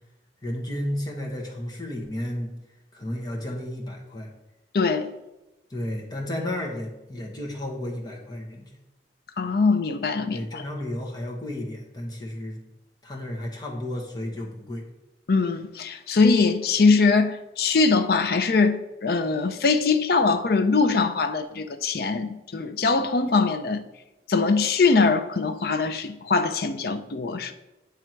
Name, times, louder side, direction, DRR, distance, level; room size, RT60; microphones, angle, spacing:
voice 1, 0.4-2.5 2.9-4.3 5.7-8.7 10.3-12.6 13.0-14.9, left 1 dB, 25° left, 1.2 m, -32 dB
voice 2, 4.7-5.1 9.4-10.6 15.3-23.8 24.3-27.5, left 4 dB, 60° left, 0.5 m, -22 dB
9.2 x 3.5 x 4.5 m
head